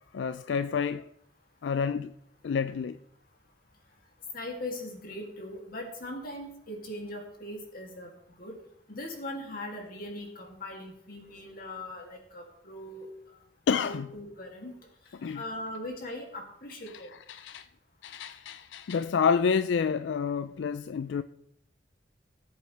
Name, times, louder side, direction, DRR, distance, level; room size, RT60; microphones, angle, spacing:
voice 1, 0.1-1.0 1.6-2.1 2.4-3.0 13.7-14.1 15.2-15.4 17.3-17.7 18.0-21.2, left 6 dB, 85° left, 0.4 m, -28 dB
voice 2, 4.3-8.1 8.4-8.5 8.9-13.1 13.8-14.7 15.3-17.1, left 1 dB, 55° left, 2.6 m, -40 dB
18.5 x 8.1 x 3.3 m
head